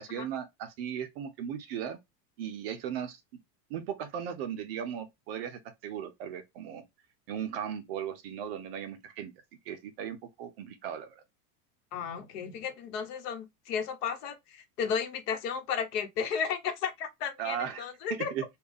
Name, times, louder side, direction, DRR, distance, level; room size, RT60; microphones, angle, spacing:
voice 1, 0.0-2.0 2.4-3.2 3.7-6.8 7.3-9.3 9.7-11.2 17.4-17.8 18.1-18.4, right 9 dB, 40° right, 0.4 m, -37 dB
voice 2, 11.9-18.3, left 7 dB, 75° left, 1.0 m, -34 dB
3.5 x 2.3 x 3.5 m
supercardioid pair, 170°, 49 cm